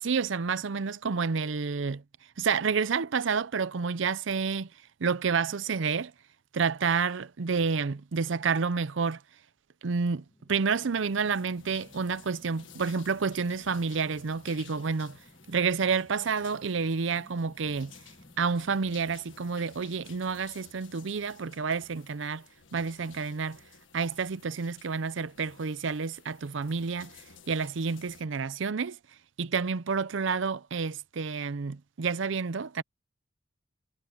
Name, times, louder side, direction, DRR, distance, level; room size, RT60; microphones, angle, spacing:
voice 1, 0.0-2.0 2.4-4.7 5.0-6.1 6.5-9.2 9.8-15.2 15.5-17.9 18.4-22.4 22.7-23.6 23.9-27.1 27.5-29.0 29.4-32.8, right 5 dB, 70° right, 0.6 m, -29 dB
sound 1, 10.0-20.9, equal, 30° left, 2.3 m, -58 dB
sound 2, 10.7-28.2, left 7 dB, 70° left, 1.6 m, -55 dB
head